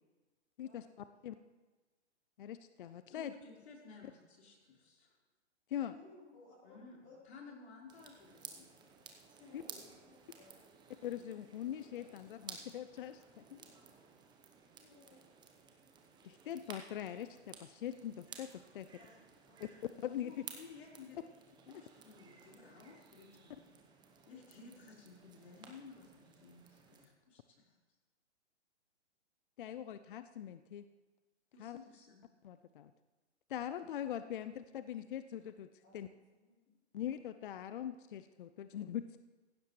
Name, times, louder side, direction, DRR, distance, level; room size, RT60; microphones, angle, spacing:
voice 1, 2.4-3.3 5.7-5.9 9.5-9.6 11.0-13.6 16.2-18.9 20.0-20.5 29.6-30.8 31.6-31.8 32.4-32.9 33.5-35.7 35.9-36.1 36.9-39.2, left 10 dB, 50° left, 11 dB, 0.5 m, -42 dB
voice 2, 3.1-5.2 6.6-8.7 20.2-21.2 21.6-23.8 24.3-27.6 31.5-32.2, left 4 dB, 65° left, -2 dB, 4.4 m, -55 dB
voice 3, 5.9-7.5 9.4-10.7 13.9-14.0 14.7-15.2 19.0-19.1 19.5-19.7 35.8-36.5, left 3 dB, 25° left, -9 dB, 4.2 m, -61 dB
sound 1, 7.9-27.1, right 6 dB, 10° right, 1.0 m, -56 dB
17.5 x 15.5 x 3.2 m, 1.3 s
hypercardioid pair, 135°, 35 cm